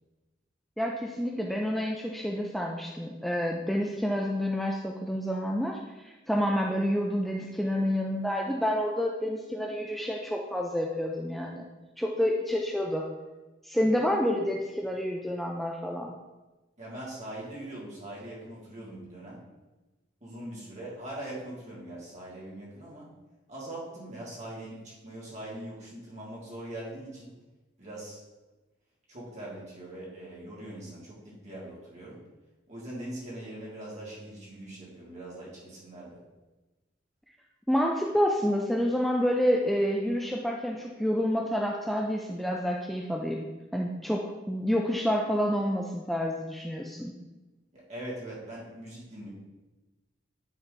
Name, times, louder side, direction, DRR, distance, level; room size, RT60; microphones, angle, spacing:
voice 1, 0.8-11.7 12.0-13.1 13.6-16.1 37.7-43.5 43.7-47.1, equal, ahead, -1 dB, 0.4 m, -28 dB
voice 2, 16.8-19.4 20.2-23.1 23.5-27.3 27.8-28.2 29.1-32.2 32.7-36.2 47.7-49.3, right 1 dB, 40° right, -5 dB, 2.2 m, -41 dB
9.7 x 3.4 x 3.8 m, 1.1 s
head